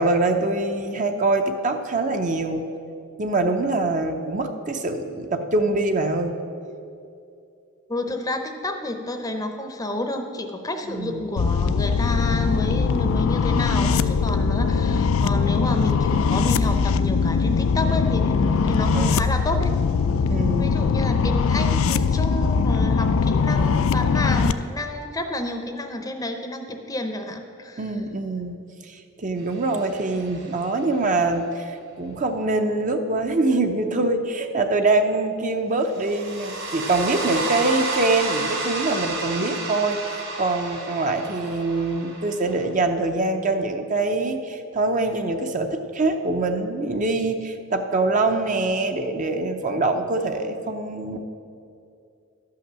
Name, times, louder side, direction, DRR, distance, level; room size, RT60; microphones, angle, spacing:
voice 1, 0.0-2.6 3.2-6.4 10.9-11.3 18.9-19.4 20.3-20.8 27.8-51.2, right 2 dB, 35° right, 6 dB, 0.6 m, -24 dB
voice 2, 7.9-19.7 20.6-27.8, left 1 dB, 15° left, 5 dB, 0.7 m, -30 dB
sound 1, 11.4-24.5, left 5 dB, 65° left, 0.4 m, -21 dB
sound 2, 29.6-30.6 35.9-42.6, right 3 dB, 70° right, 2.8 m, -31 dB
12.0 x 5.8 x 7.4 m, 2.6 s
head